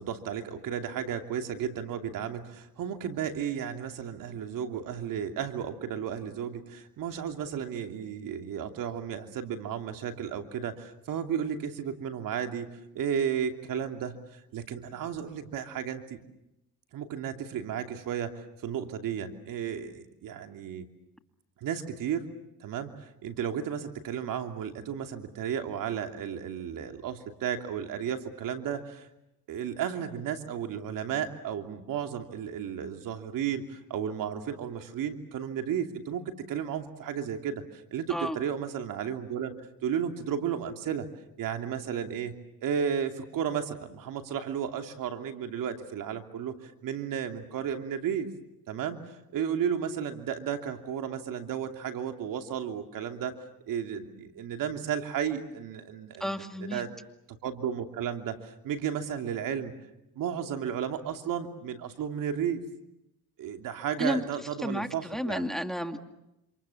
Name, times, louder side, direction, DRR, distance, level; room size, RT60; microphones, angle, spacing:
voice 1, 0.0-12.7 12.9-16.2 16.9-20.8 21.6-22.3 22.6-29.1 29.5-39.5 39.8-41.1 41.4-42.3 42.6-48.3 48.7-49.0 49.3-53.4 53.7-56.9 57.4-59.7 60.1-62.6 63.4-65.4, right 8 dB, 70° right, 6 dB, 2.9 m, -33 dB
voice 2, 56.2-56.8 64.0-64.2 64.6-66.0, equal, ahead, 7 dB, 2.3 m, -32 dB
28.0 x 27.5 x 7.2 m, 0.87 s
supercardioid pair, 75°, 34 cm